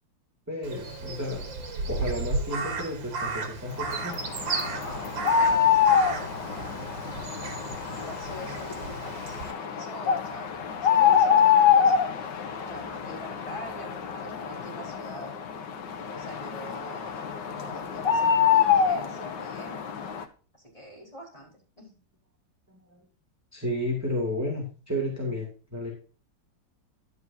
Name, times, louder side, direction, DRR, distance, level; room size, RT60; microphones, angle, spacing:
voice 1, 0.5-1.5 1.9-4.2 22.9-23.0 23.5-25.9, left 1 dB, 10° right, -2 dB, 2.3 m, -32 dB
Crow, 0.6-9.5, right 3 dB, 80° right, 2.3 m, -34 dB
sound 1, 3.9-20.2, left 7 dB, 70° left, 1.7 m, -25 dB
voice 2, 4.8-7.3 7.9-12.0 12.6-15.4 16.0-19.9 20.7-21.5 21.8-22.0, equal, 20° left, -3 dB, 4.4 m, -44 dB
11.5 x 9.3 x 2.7 m, 0.37 s
omnidirectional pair, 2.0 m